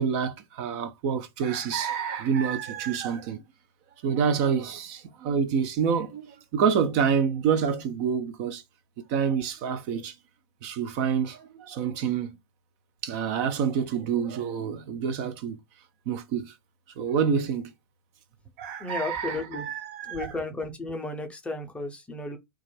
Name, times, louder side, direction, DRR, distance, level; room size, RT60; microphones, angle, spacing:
voice 1, 0.0-3.4 4.0-8.6 9.1-10.2 10.6-12.4 13.0-15.6 16.1-16.5 17.0-17.7 18.6-20.4, right 7 dB, 40° right, 0.4 m, -27 dB
voice 2, 18.8-19.6 20.1-22.4, left 2 dB, 10° left, 0.6 m, -33 dB
2.3 x 2.1 x 3.1 m
figure-of-eight pair, 100°, 13 cm